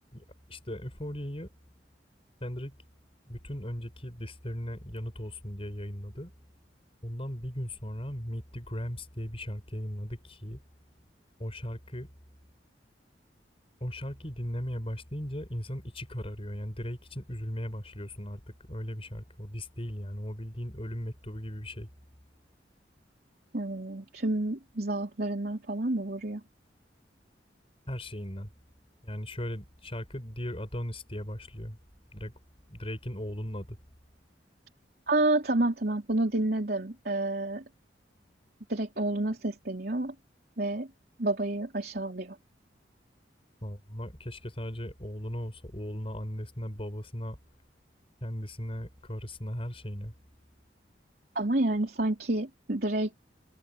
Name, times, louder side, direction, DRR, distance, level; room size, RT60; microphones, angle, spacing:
voice 1, 0.1-1.5 2.4-2.8 3.3-6.3 7.0-10.6 11.4-12.1 13.8-21.9 27.9-28.5 29.0-31.8 32.1-32.3 32.7-33.8 43.6-47.4 48.2-50.1, equal, 35° left, 5.8 m, -37 dB
voice 2, 23.5-26.4 35.1-37.6 38.7-40.1 40.6-40.9 41.2-42.4 51.4-53.2, right 2 dB, 60° right, 3.5 m, -29 dB
head